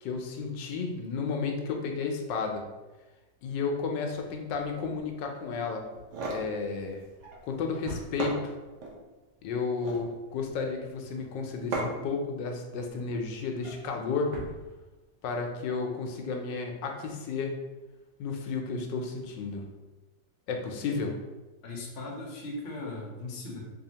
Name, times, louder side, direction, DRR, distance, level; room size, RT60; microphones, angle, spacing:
voice 1, 0.0-2.6 3.4-5.8 6.3-7.0 7.4-8.6 9.4-14.3 15.2-17.6 18.2-19.6 20.5-21.2, left 4 dB, 85° left, 3 dB, 1.3 m, -32 dB
Drawer open or close, 4.0-8.8 9.2-9.5 9.8-12.0 12.4-15.4 15.7-15.9 16.2-16.3, equal, 85° right, 0.5 m, -49 dB
sound 1, 5.9-6.5 7.7-7.8 8.2-9.0 9.6-10.1 11.7-12.1, right 2 dB, 60° right, 0.8 m, -34 dB
voice 2, 21.6-23.6, left 2 dB, 50° left, -1 dB, 0.8 m, -38 dB
4.1 x 2.7 x 2.8 m, 1.1 s
omnidirectional pair, 1.9 m